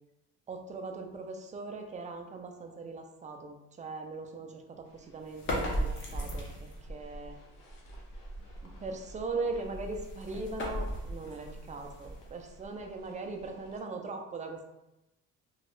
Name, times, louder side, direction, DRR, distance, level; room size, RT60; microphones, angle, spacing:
voice 1, 0.5-7.4 8.6-14.6, right 3 dB, 25° right, 4 dB, 0.3 m, -40 dB
sound 1, 4.8-13.8, right 1 dB, 75° left, 0.9 m, -46 dB
sound 2, 5.3-6.9 9.6-12.6, equal, 35° left, 0.8 m, -37 dB
3.0 x 2.3 x 3.0 m, 0.92 s
cardioid pair, 115°, 33 cm